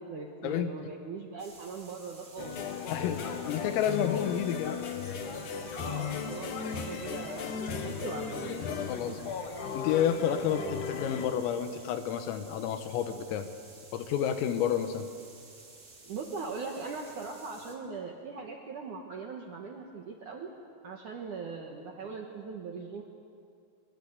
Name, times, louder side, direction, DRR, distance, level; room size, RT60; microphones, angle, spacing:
voice 1, 0.1-2.6 5.7-8.6 9.1-9.2 16.0-20.5 20.8-23.0, right 4 dB, 70° right, 1 dB, 1.9 m, -40 dB
sound 1, 1.4-17.8, right 3 dB, 25° right, 2.1 m, -53 dB
sound 2, 2.4-11.3, left 6 dB, 65° left, 2.0 m, -36 dB
voice 2, 2.9-4.8 8.9-9.2 9.7-13.5 13.9-15.1, left 9 dB, 90° left, 8 dB, 3.9 m, -30 dB
25.5 x 23.0 x 8.1 m, 2.4 s
omnidirectional pair, 5.8 m